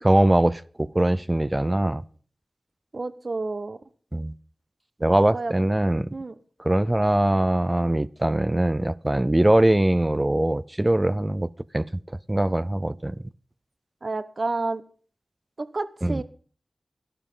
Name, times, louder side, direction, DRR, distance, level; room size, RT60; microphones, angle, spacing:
voice 1, 0.0-2.0 4.1-4.3 5.0-6.1 6.6-11.5 11.7-11.9 12.3-13.2 16.0-16.2, right 1 dB, 20° right, 0.5 m, -22 dB
voice 2, 2.9-3.8 5.3-5.5 6.1-6.3 14.0-14.8 15.6-16.2, right 3 dB, 55° right, 1.0 m, -30 dB
12.5 x 12.0 x 5.6 m
wide cardioid pair, 70°, 0 cm